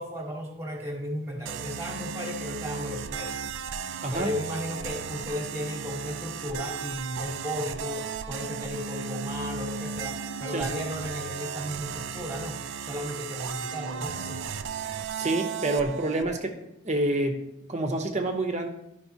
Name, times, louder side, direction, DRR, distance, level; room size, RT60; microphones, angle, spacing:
voice 1, 0.0-3.6 4.1-14.5, equal, 15° right, 1 dB, 1.2 m, -35 dB
sound 1, 1.4-16.3, right 6 dB, 65° right, 0.4 m, -35 dB
voice 2, 4.0-4.3 10.5-10.7 15.2-16.6 16.8-18.7, right 2 dB, 35° right, 6 dB, 0.8 m, -28 dB
11.5 x 5.4 x 2.7 m, 0.83 s
head